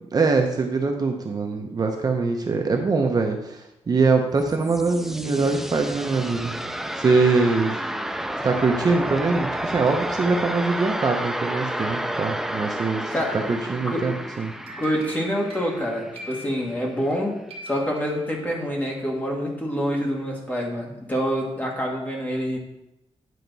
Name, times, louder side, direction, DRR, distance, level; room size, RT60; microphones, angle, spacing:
voice 1, 0.1-6.5 6.9-7.8 8.4-13.1 13.5-14.5, right 4 dB, 35° right, 3 dB, 0.7 m, -23 dB
sound 1, 4.2-17.0, right 1 dB, 5° right, 0.3 m, -31 dB
voice 2, 13.1-13.6 13.9-14.1 14.8-17.4 17.7-22.6, equal, 15° left, -1 dB, 1.6 m, -26 dB
sound 2, 14.4-17.2 17.5-18.8, equal, 65° right, 1.6 m, -43 dB
9.3 x 5.6 x 4.0 m, 0.90 s
wide cardioid pair, 160°, 11 cm